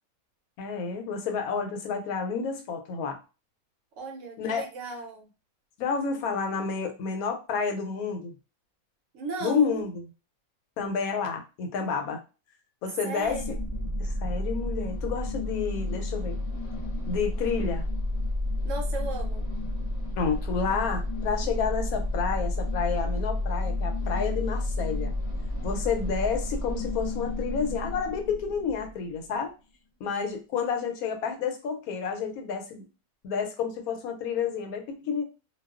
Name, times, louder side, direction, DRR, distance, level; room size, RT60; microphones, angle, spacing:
voice 1, 0.6-3.2 4.4-4.7 5.8-8.3 9.4-10.0 10.8-12.2 12.8-13.6 14.0-16.4 17.1-17.8 20.2-25.1 25.6-29.5 30.0-32.8 33.2-35.2, left 5 dB, 85° left, 4 dB, 1.1 m, -30 dB
voice 2, 4.0-5.3 9.1-9.9 13.0-13.4 18.6-19.5, right 3 dB, 70° right, 2 dB, 0.9 m, -36 dB
sound 1, 13.2-29.1, left 1 dB, 50° left, 0.5 m, -31 dB
2.3 x 2.3 x 2.3 m, 0.31 s
omnidirectional pair, 1.5 m